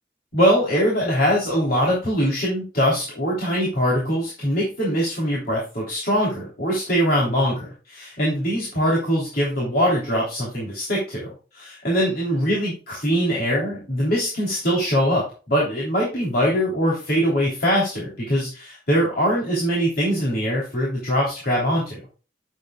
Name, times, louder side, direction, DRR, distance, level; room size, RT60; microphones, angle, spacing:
voice 1, 0.3-22.0, equal, 55° left, -4 dB, 3.3 m, -22 dB
10.0 x 8.1 x 2.3 m, 0.34 s
head